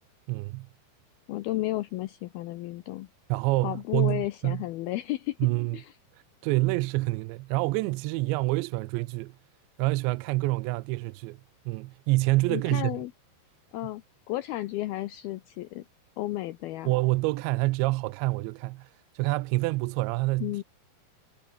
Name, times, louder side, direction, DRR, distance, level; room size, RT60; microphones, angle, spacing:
voice 1, 0.3-0.7 3.3-4.6 5.4-5.8 6.4-9.3 9.8-11.4 11.7-13.0 16.9-18.9 19.2-20.6, right 21 dB, 80° right, 2.8 m, -27 dB
voice 2, 1.3-3.1 3.6-5.4 5.7-5.9 12.5-13.1 13.7-15.9 16.2-16.9 20.4-20.6, left 16 dB, 90° left, 2.1 m, -33 dB
omnidirectional pair, 5.4 m